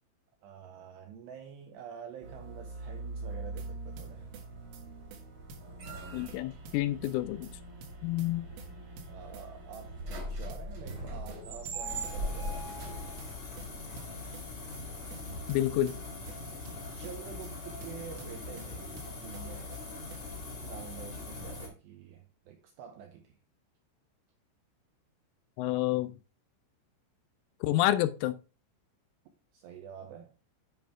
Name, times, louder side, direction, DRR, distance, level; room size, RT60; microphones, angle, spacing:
voice 1, 0.4-4.3 9.1-10.0 10.3-13.0 17.0-19.8 20.6-23.4 29.5-30.3, right 8 dB, 90° right, 2.4 m, -47 dB
sound 1, 2.2-15.9, right 1 dB, 45° right, 1.7 m, -41 dB
sound 2, 3.3-3.7 4.0-4.5 4.7-4.8 5.1-5.2 5.5-6.4 6.6-7.2 7.4-7.5 7.8-8.7 9.0-9.5 9.7-9.8 10.1-10.2 10.5-11.4 11.7-12.2 12.4-12.5 12.8-13.7 14.0-14.5 14.7-14.8 15.1-15.2 15.5-16.4 16.7-17.2 17.4-17.5 17.8-18.7 19.0-19.5 19.7-19.8 20.1-20.2, right 4 dB, 75° right, 3.9 m, -50 dB
voice 2, 6.1-7.5 8.0-8.5 15.5-15.9 25.6-26.1 27.6-28.4, left 14 dB, 85° left, 3.0 m, -29 dB
sound 3, 11.9-21.7, left 3 dB, 55° left, 1.1 m, -42 dB
10.5 x 5.1 x 3.4 m
omnidirectional pair, 5.8 m